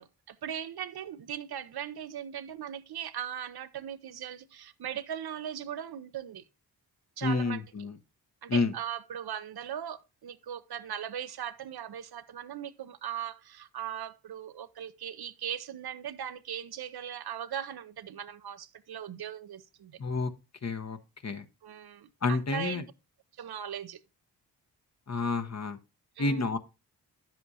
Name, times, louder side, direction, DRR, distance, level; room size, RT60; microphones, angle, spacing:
voice 1, 0.0-6.4 7.2-7.6 8.4-20.0 21.6-22.8 23.4-24.0 26.2-26.5, right 9 dB, 60° right, 0.7 m, -39 dB
voice 2, 7.2-8.0 8.5-8.7 20.0-20.3 20.6-21.0 21.2-21.4 22.2-22.8 25.1-25.8 26.2-26.6, left 3 dB, 40° left, 1.0 m, -29 dB
9.8 x 7.7 x 2.7 m
supercardioid pair, 40°, 42 cm